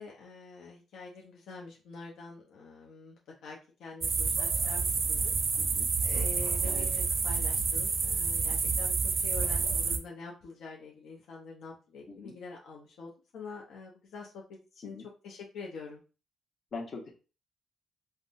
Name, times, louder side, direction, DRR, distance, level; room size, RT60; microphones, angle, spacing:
voice 1, 0.0-5.4 6.0-15.0 15.2-16.0, left 4 dB, 75° left, -1 dB, 0.6 m, -46 dB
sound 1, 4.0-10.0, right 5 dB, 45° right, 0.4 m, -29 dB
voice 2, 5.6-5.9 6.6-6.9 12.1-12.3 14.8-15.1 16.7-17.1, left 3 dB, 50° left, 1 dB, 0.9 m, -42 dB
3.5 x 2.1 x 2.6 m, 0.33 s
cardioid pair, 90°, 0 cm